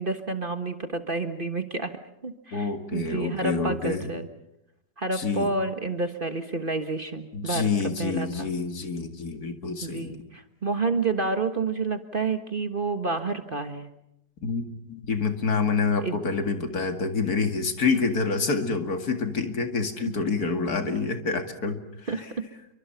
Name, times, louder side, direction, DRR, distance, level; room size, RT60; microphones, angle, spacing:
voice 1, 0.0-4.3 5.0-7.7 8.0-8.5 9.8-13.9 16.0-16.2 22.1-22.5, right 3 dB, 30° right, 8 dB, 1.5 m, -29 dB
voice 2, 2.5-4.1 5.1-5.5 7.3-10.2 14.4-21.8 22.1-22.2, left 4 dB, 60° left, 7 dB, 2.6 m, -27 dB
29.5 x 24.5 x 5.7 m, 0.85 s
omnidirectional pair, 1.8 m